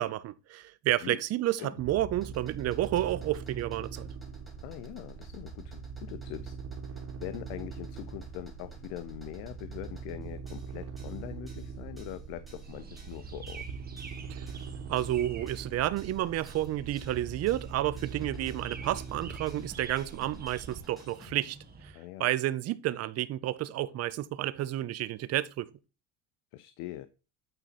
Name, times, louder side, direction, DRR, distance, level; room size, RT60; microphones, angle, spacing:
voice 1, 0.0-4.1 14.3-14.5 14.9-21.9 22.2-25.7, right 13 dB, 40° right, 0.6 m, -31 dB
sound 1, 1.7-21.3, equal, ahead, 2.1 m, -57 dB
sound 2, 1.8-20.8, right 5 dB, 60° right, 3.3 m, -42 dB
voice 2, 4.6-6.6 6.9-13.6 19.5-19.7 21.9-22.3 26.5-27.1, left 14 dB, 65° left, 0.7 m, -42 dB
sound 3, 12.6-21.9, right 4 dB, 25° right, 1.6 m, -50 dB
9.0 x 4.1 x 4.1 m
cardioid pair, 135°, 40 cm